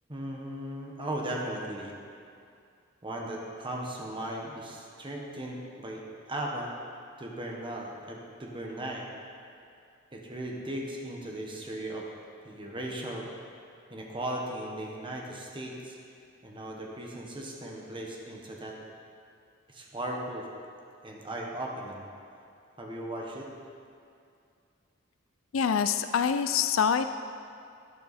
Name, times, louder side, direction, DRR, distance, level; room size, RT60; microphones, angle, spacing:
voice 1, 0.1-1.9 3.0-6.7 7.2-9.1 10.1-12.1 12.4-13.3 13.9-16.0 16.4-18.7 19.7-20.5 21.0-22.0 22.8-23.5, right 1 dB, 25° right, -1 dB, 1.4 m, -37 dB
voice 2, 25.5-27.1, left 7 dB, 80° left, 10 dB, 0.4 m, -25 dB
12.0 x 11.0 x 4.3 m, 2.4 s
head